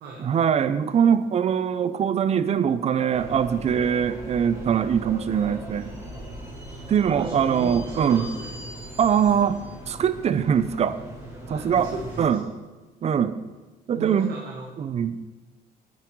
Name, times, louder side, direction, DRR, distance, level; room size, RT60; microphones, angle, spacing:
voice 1, 0.2-5.9 6.9-8.3 9.0-11.0 11.5-11.9 12.2-12.4 13.0-13.4 13.9-14.3 14.8-15.2, right 8 dB, 40° right, 13 dB, 0.6 m, -22 dB
sound 1, 3.1-12.2, right 1 dB, 20° right, 3.7 m, -39 dB
voice 2, 7.2-8.5 11.4-12.3 13.9-14.7, right 4 dB, 65° right, -1 dB, 1.7 m, -36 dB
9.8 x 8.2 x 4.7 m, 1.2 s
cardioid pair, 110°, 17 cm